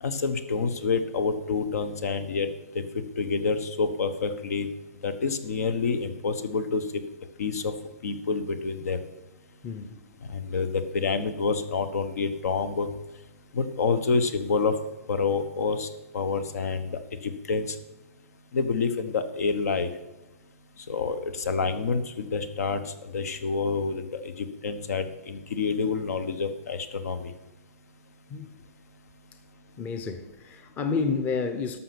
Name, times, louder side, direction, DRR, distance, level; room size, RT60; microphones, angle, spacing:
voice 1, 0.0-2.5 2.7-2.8 3.2-4.7 5.0-6.8 7.4-7.7 8.0-9.0 10.3-12.9 13.5-14.8 15.1-15.9 16.1-17.7 18.5-19.9 20.9-22.8 23.1-27.3, left 4 dB, 75° left, 1.2 m, -28 dB
voice 2, 9.6-10.0 28.3-28.5 29.8-31.8, left 5 dB, 20° left, 0.7 m, -30 dB
13.0 x 5.8 x 6.0 m
hypercardioid pair, 150°, 8 cm